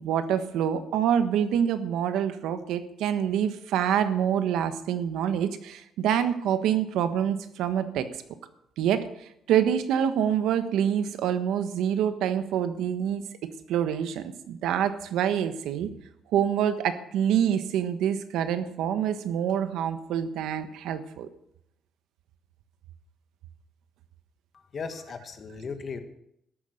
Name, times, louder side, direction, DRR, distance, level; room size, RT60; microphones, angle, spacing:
voice 1, 0.0-8.1 8.8-9.0 9.5-15.9 16.3-21.3, right 9 dB, 90° right, 10 dB, 1.3 m, -26 dB
voice 2, 24.5-26.0, left 5 dB, 35° left, 8 dB, 1.6 m, -37 dB
13.5 x 11.0 x 6.5 m, 0.76 s
cardioid pair, 165°, 0 cm